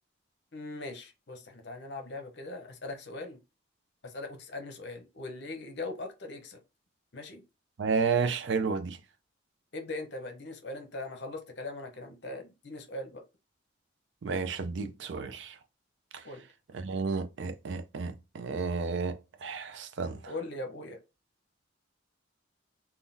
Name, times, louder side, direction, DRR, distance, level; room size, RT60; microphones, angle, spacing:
voice 1, 0.5-3.4 4.0-6.6 7.1-7.4 9.7-13.2 16.2-16.4 20.3-21.0, left 2 dB, 60° left, 0.7 m, -40 dB
voice 2, 7.8-9.0 14.2-15.6 16.1-16.2 16.7-20.3, right 5 dB, 65° right, 0.4 m, -32 dB
3.6 x 2.2 x 2.6 m
head